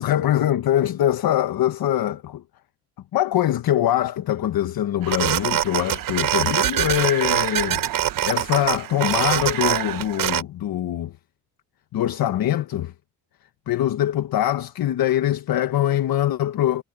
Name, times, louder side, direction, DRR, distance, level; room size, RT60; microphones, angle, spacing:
voice 1, 0.0-2.4 3.1-7.8 8.2-11.1 11.9-12.9 13.7-16.8, left 12 dB, 60° left, 1.2 m, -23 dB
sound 1, 5.0-10.4, right 12 dB, 55° right, 0.9 m, -24 dB
cardioid pair, 125°, 41 cm